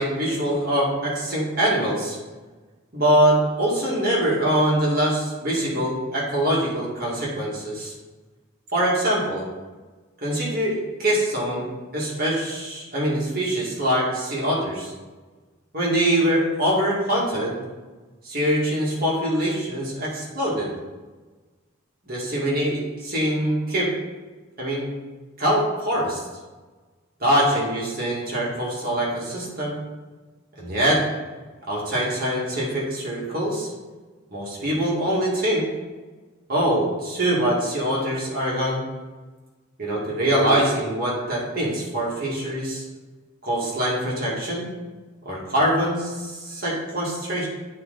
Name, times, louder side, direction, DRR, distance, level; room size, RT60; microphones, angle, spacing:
voice 1, 0.0-2.2 2.9-7.9 8.7-9.4 10.2-11.7 11.9-14.9 15.7-17.6 18.2-20.7 22.1-23.9 24.6-24.9 25.4-26.2 27.2-29.8 30.6-31.0 31.7-33.7 34.3-35.7 36.5-38.8 39.8-42.8 43.4-44.7 45.3-47.5, right 1 dB, 45° right, -5 dB, 1.9 m, -23 dB
8.7 x 3.8 x 3.9 m, 1.3 s
head